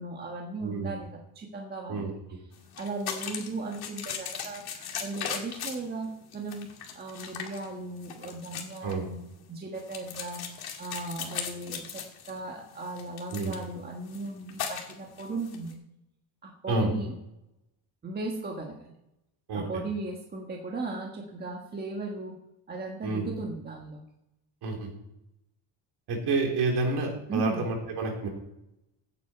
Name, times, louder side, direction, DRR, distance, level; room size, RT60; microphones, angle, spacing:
voice 1, 0.0-2.1 2.8-6.7 6.9-9.2 9.5-15.7 16.4-17.1 18.0-18.9 19.5-22.4 22.7-24.0 27.3-27.6, right 3 dB, 20° right, 0 dB, 1.5 m, -37 dB
sound 1, 2.5-15.7, left 7 dB, 50° left, 2.2 m, -39 dB
voice 2, 26.1-28.3, right 3 dB, 55° right, 1 dB, 3.8 m, -29 dB
16.0 x 8.9 x 4.4 m, 0.87 s
cardioid pair, 165°, 48 cm